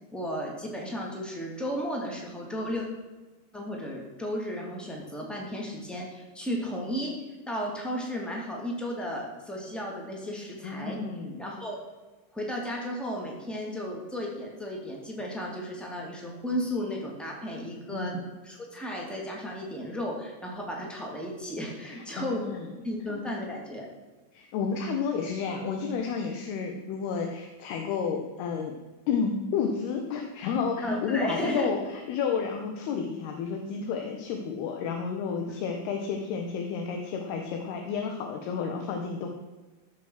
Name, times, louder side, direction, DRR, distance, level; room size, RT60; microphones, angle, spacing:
voice 1, 0.1-2.8 3.5-7.1 7.5-11.0 11.4-11.8 12.3-18.2 18.4-22.5 22.8-23.9 30.8-31.7, equal, ahead, -1 dB, 0.9 m, -34 dB
voice 2, 10.6-11.5 17.9-18.2 21.8-22.7 24.3-28.7 29.1-39.3, left 6 dB, 70° left, 3 dB, 2.8 m, -31 dB
16.0 x 7.1 x 6.4 m, 1.2 s
omnidirectional pair, 5.3 m